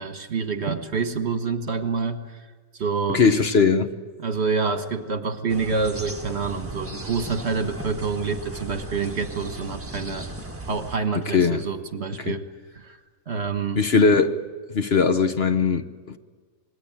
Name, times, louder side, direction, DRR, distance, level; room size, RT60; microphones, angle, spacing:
voice 1, 0.0-2.5 2.7-3.2 4.2-10.3 10.6-12.5 12.7-13.0 13.3-13.9, right 5 dB, 50° right, 1.6 m, -27 dB
voice 2, 3.1-3.9 11.3-11.6 12.2-12.4 13.8-14.4 14.7-16.2, left 5 dB, 50° left, 1.1 m, -20 dB
sound 1, 5.5-11.0, right 1 dB, 10° right, 1.6 m, -36 dB
27.0 x 21.0 x 8.8 m
omnidirectional pair, 1.5 m